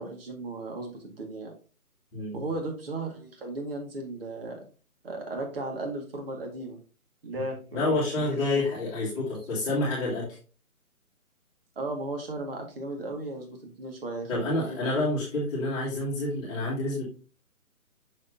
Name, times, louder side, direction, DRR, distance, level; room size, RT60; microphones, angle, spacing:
voice 1, 0.0-1.5 2.3-4.6 5.0-6.8 7.2-8.0 8.4-8.7 11.8-15.1, right 2 dB, 40° right, 2 dB, 2.0 m, -36 dB
voice 2, 7.7-10.3 14.3-17.0, left 2 dB, 10° left, -8 dB, 2.1 m, -28 dB
6.6 x 6.5 x 2.7 m, 0.35 s
figure-of-eight pair, 155°, 44 cm